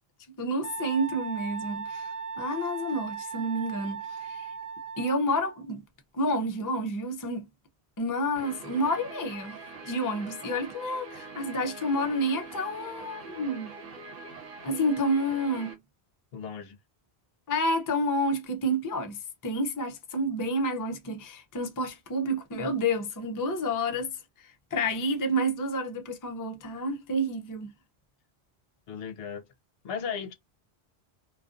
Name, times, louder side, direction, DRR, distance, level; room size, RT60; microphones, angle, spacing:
voice 1, 0.4-2.1 2.4-4.5 5.0-5.8 6.1-7.5 8.0-9.6 9.8-13.7 14.6-15.8 17.5-24.1 24.7-27.7, equal, 35° left, 0.3 m, -29 dB
Wind instrument woodwind instrument, 0.6-5.6, right 5 dB, 20° right, 0.8 m, -38 dB
Guitar, 8.4-15.7, right 3 dB, 60° right, 0.9 m, -44 dB
voice 2, 16.3-16.8 28.9-29.5 29.8-30.3, left 7 dB, 70° left, 0.8 m, -36 dB
2.4 x 2.3 x 2.4 m
omnidirectional pair, 1.1 m